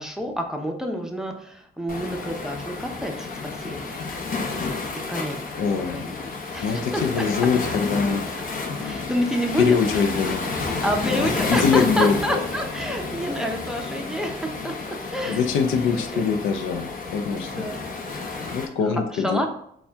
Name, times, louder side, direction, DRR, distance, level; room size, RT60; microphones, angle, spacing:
voice 1, 0.0-3.9 5.1-5.5 5.9-6.2 6.5-7.0 8.8-9.8 10.8-15.5 15.7-16.2 17.4-17.8 18.2-18.4 19.1-19.5, equal, 5° right, 3 dB, 0.6 m, -28 dB
Waves surf, 1.9-18.7, left 4 dB, 45° left, 0.9 m, -31 dB
voice 2, 5.5-6.1 6.6-8.2 8.7-9.1 9.6-10.8 11.1-12.5 15.3-17.7 18.5-19.4, left 5 dB, 85° left, 6 dB, 0.5 m, -24 dB
4.2 x 2.3 x 3.4 m, 0.70 s
cardioid pair, 90°, 20 cm